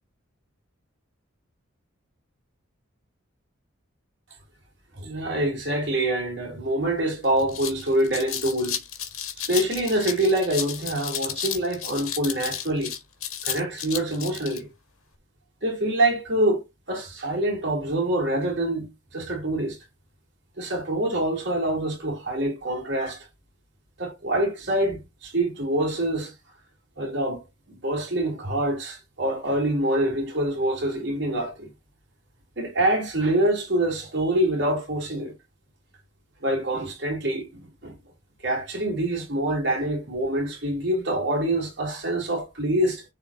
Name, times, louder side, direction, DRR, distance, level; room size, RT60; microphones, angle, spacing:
voice 1, 5.0-8.8 9.5-12.9 13.4-14.7 15.6-19.8 20.6-23.3 24.0-26.3 27.0-27.4 27.7-31.7 32.6-35.3 36.4-37.5 37.8-37.9 38.4-43.0, right 1 dB, 55° right, 3.2 m, -25 dB
sound 1, 6.8-6.9 7.2-14.6, left 9 dB, 90° left, 1.7 m, -33 dB
10.5 x 4.1 x 2.8 m
head